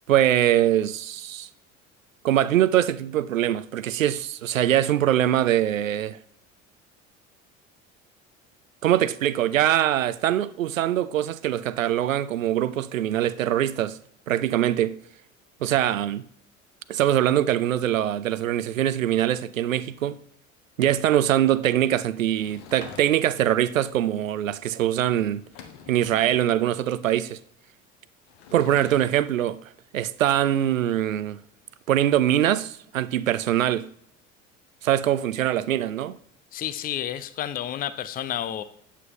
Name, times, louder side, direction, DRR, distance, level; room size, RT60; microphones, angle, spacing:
voice 1, 0.1-1.5 2.2-6.2 8.8-14.0 14.3-15.0 15.6-16.2 16.9-20.2 20.8-25.4 25.9-27.4 28.5-29.6 29.9-31.4 31.9-33.9 34.8-36.2, right 11 dB, 80° right, 0.5 m, -23 dB
Sliding door / Wood, 22.3-23.5 25.0-25.1 25.4-26.5 28.3-29.2, left 7 dB, 60° left, 1.4 m, -45 dB
voice 2, 36.5-38.6, left 11 dB, 25° left, 0.5 m, -30 dB
9.1 x 8.3 x 3.1 m
figure-of-eight pair, 65°, 39 cm